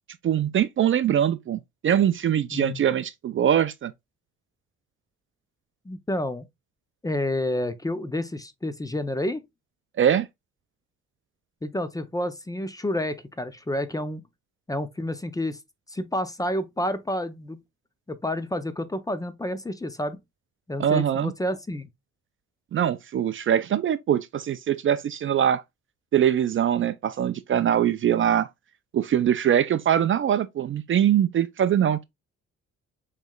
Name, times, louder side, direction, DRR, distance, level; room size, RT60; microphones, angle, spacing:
voice 1, 0.2-3.9 10.0-10.3 20.8-21.3 22.7-25.6 26.1-28.5 28.9-32.0, right 9 dB, 45° right, 0.4 m, -22 dB
voice 2, 2.5-2.8 5.9-6.5 7.0-9.4 11.6-14.2 14.7-15.6 15.9-17.6 18.1-20.2 20.7-21.9, left 1 dB, 10° left, 0.5 m, -29 dB
5.4 x 3.2 x 2.2 m
cardioid pair, 90°, 30 cm